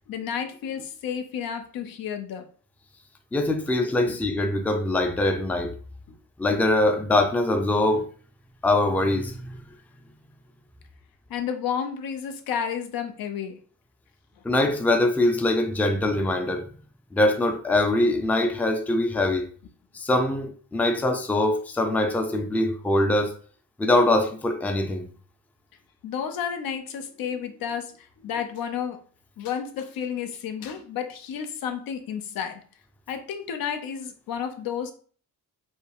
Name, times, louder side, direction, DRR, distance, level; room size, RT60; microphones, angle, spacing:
voice 1, 0.1-2.5 4.1-4.2 6.1-6.2 11.3-13.6 21.0-21.1 26.0-29.0 29.4-32.6 33.1-34.9, left 7 dB, 85° left, 0.8 m, -31 dB
voice 2, 3.3-5.8 6.4-8.1 8.6-9.4 14.4-16.7 17.1-19.5 19.9-23.3 23.8-25.1, left 1 dB, 5° left, 0.4 m, -23 dB
5.5 x 2.1 x 4.7 m
wide cardioid pair, 170°, 35 cm